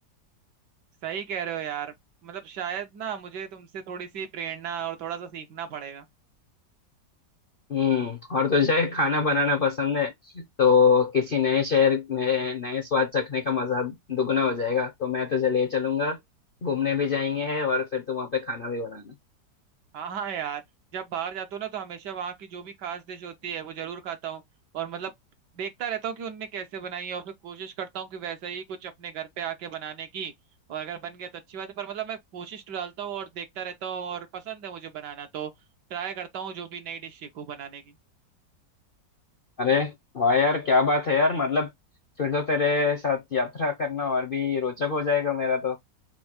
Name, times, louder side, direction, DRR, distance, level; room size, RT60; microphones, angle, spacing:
voice 1, 1.0-1.9 2.2-6.1 19.9-20.6 20.9-24.4 24.7-25.1 25.5-30.3 30.7-35.5 35.9-37.9, right 8 dB, 70° right, 1.5 m, -35 dB
voice 2, 7.7-16.2 16.6-19.1 39.6-41.7 42.2-45.8, left 5 dB, 55° left, 0.6 m, -24 dB
4.5 x 2.4 x 4.2 m
omnidirectional pair, 1.9 m